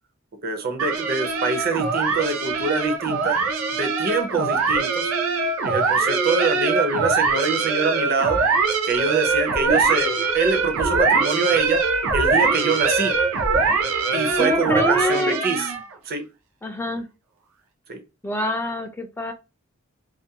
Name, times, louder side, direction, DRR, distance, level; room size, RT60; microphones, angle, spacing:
voice 1, 0.4-3.4 3.7-5.1 5.6-8.4 8.8-11.8 12.1-13.1 14.1-15.7 16.1-16.2 17.9-18.0, right 4 dB, 45° right, 5 dB, 0.6 m, -25 dB
sound 1, 0.8-15.9, right 4 dB, 90° right, 0.5 m, -22 dB
voice 2, 14.4-15.4 16.6-17.1 18.2-19.3, left 1 dB, 10° left, 6 dB, 0.4 m, -25 dB
2.5 x 2.2 x 2.7 m, 0.28 s
head